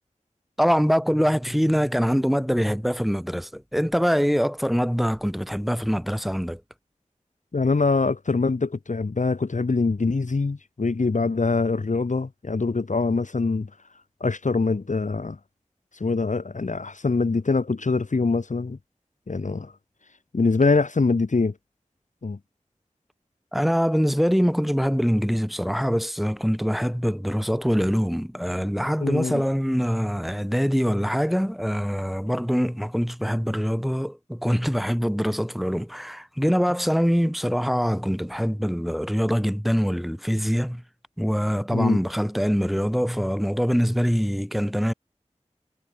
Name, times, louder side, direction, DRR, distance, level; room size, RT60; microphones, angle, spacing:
voice 1, 0.6-6.6 23.5-40.8 41.2-44.9, equal, ahead, 3.1 m, -24 dB
voice 2, 7.5-13.7 14.2-15.4 16.0-18.8 19.3-19.7 20.3-21.5 22.2-22.4 29.0-29.4 41.7-42.0, left 3 dB, 85° left, 1.2 m, -24 dB
wide cardioid pair, 50°, 13 cm